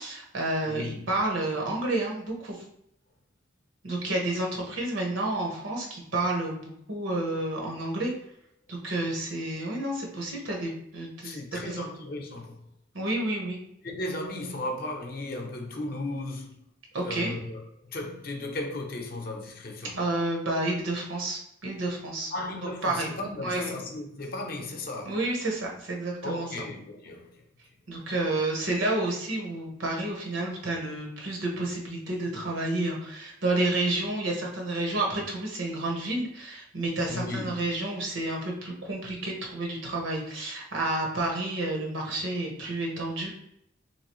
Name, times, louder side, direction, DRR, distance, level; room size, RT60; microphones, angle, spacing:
voice 1, 0.0-2.6 3.8-8.1 8.7-11.8 12.9-13.6 16.9-17.3 20.0-22.3 22.8-23.1 23.4-23.7 25.0-26.7 27.9-43.3, right 2 dB, 80° right, 1.0 m, -30 dB
voice 2, 0.6-1.0 11.2-12.7 13.8-16.6 17.0-20.0 22.3-25.2 26.2-27.4 37.1-37.6, left 2 dB, 50° left, 0.6 m, -35 dB
3.3 x 2.9 x 3.0 m
head